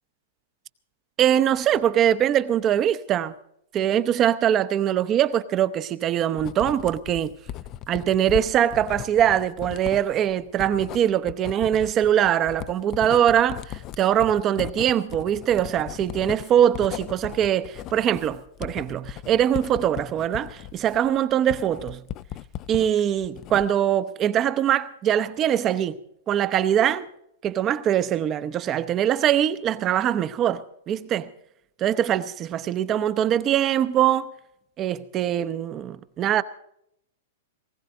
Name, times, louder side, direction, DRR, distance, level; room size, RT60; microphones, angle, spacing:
voice 1, 1.2-3.3 3.7-7.3 7.9-22.0 22.7-26.0 26.3-27.1 27.4-31.3 31.8-34.3 34.8-36.4, right 10 dB, 25° right, 0.8 m, -22 dB
Writing, 6.4-22.9 23.2-23.9, left 12 dB, 30° left, 0.5 m, -37 dB
20.0 x 17.0 x 3.9 m
hypercardioid pair, 145°, 0 cm